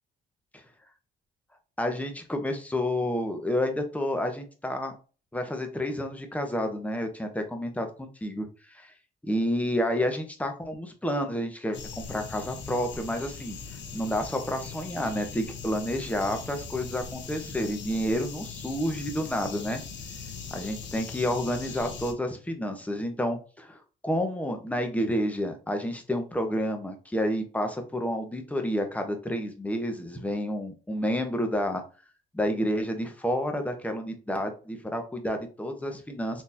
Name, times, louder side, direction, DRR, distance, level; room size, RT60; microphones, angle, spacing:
voice 1, 1.8-4.9 5.3-8.5 8.7-8.9 9.2-13.6 13.9-19.8 20.5-31.8 32.3-36.4, equal, 5° left, 4 dB, 0.9 m, -30 dB
sound 1, 11.7-22.1, left 5 dB, 65° left, 0.9 m, -40 dB
3.9 x 2.9 x 2.7 m, 0.36 s
cardioid pair, 90°, 20 cm